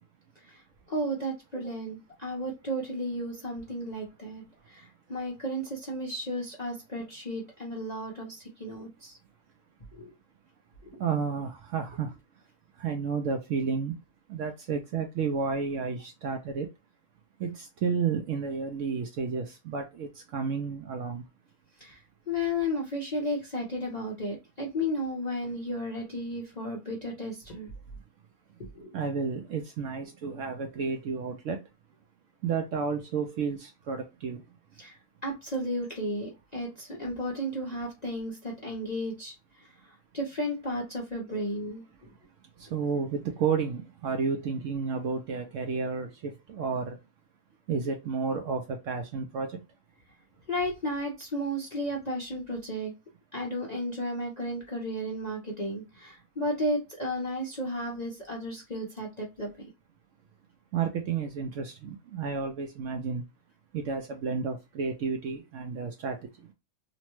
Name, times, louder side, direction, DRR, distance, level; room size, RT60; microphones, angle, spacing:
voice 1, 0.9-9.2 9.9-10.1 10.8-11.0 21.8-27.7 28.6-29.0 34.8-41.8 50.5-52.9 53.3-59.5, equal, 50° left, 0.5 m, -34 dB
voice 2, 11.0-12.1 12.8-13.9 14.3-16.7 17.4-21.2 28.9-31.6 32.4-34.4 42.7-47.0 47.7-49.5 60.7-63.2 63.7-66.2, right 5 dB, 70° right, 0.8 m, -31 dB
2.9 x 2.1 x 2.9 m
omnidirectional pair, 1.6 m